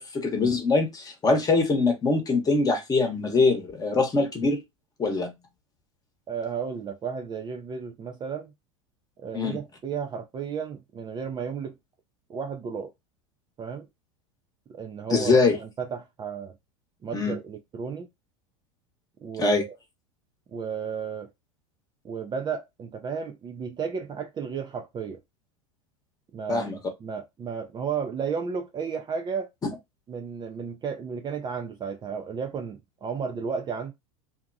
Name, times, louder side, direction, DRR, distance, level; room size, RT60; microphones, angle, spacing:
voice 1, 0.0-4.6 5.0-5.3 9.3-9.6 15.1-15.6 17.1-17.3 19.4-19.6 26.5-26.8 29.6-29.7, left 3 dB, 20° left, 1.0 m, -23 dB
voice 2, 6.3-8.5 9.2-11.7 12.3-12.9 13.6-13.9 14.7-16.5 17.0-18.1 19.2-19.8 20.5-21.3 22.0-25.2 26.3-29.5 30.1-33.9, right 6 dB, 25° right, 0.4 m, -33 dB
2.6 x 2.1 x 2.6 m
hypercardioid pair, 90°, 17 cm